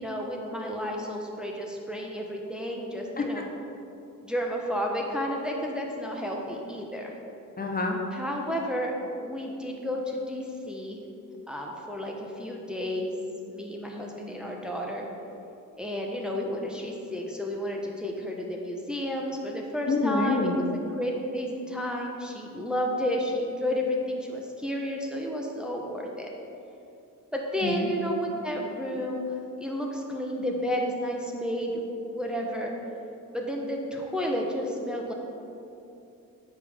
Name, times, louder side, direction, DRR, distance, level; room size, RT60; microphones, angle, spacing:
voice 1, 0.0-3.5 4.2-7.1 8.1-8.9 9.2-11.0 11.5-13.1 13.5-15.0 15.8-20.5 20.9-26.3 27.3-29.3 29.6-31.8 32.1-32.7 33.3-35.1, equal, 5° right, -1 dB, 0.9 m, -31 dB
voice 2, 7.6-8.0 19.9-20.5 27.6-27.7, left 3 dB, 25° left, 1 dB, 0.8 m, -26 dB
9.2 x 5.5 x 3.5 m, 2.7 s
cardioid pair, 100°, 33 cm